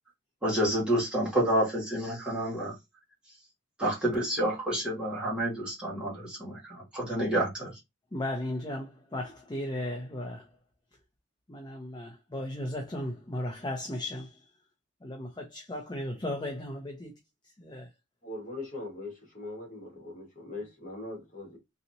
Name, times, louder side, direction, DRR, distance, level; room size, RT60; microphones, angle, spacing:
voice 1, 0.4-2.7 3.8-7.7, right 1 dB, 5° right, 2.0 m, -29 dB
voice 2, 8.1-10.4 11.5-14.3 15.0-17.1 17.6-17.9, left 1 dB, 20° left, 0.7 m, -36 dB
voice 3, 18.2-21.6, left 2 dB, 40° left, 2.0 m, -41 dB
4.0 x 3.0 x 2.7 m
head